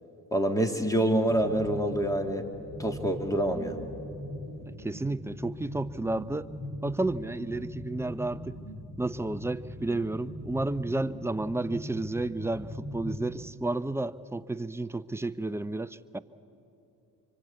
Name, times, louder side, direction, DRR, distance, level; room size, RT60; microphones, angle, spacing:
voice 1, 0.3-2.4 2.8-3.8, right 1 dB, 10° left, 5 dB, 2.2 m, -26 dB
sound 1, 1.3-13.5, left 1 dB, 30° left, 2.4 m, -41 dB
voice 2, 4.7-6.5 6.8-8.6 9.0-16.2, right 2 dB, 5° right, 12 dB, 0.5 m, -32 dB
25.5 x 23.5 x 8.3 m, 2.8 s
cardioid pair, 90°, 39 cm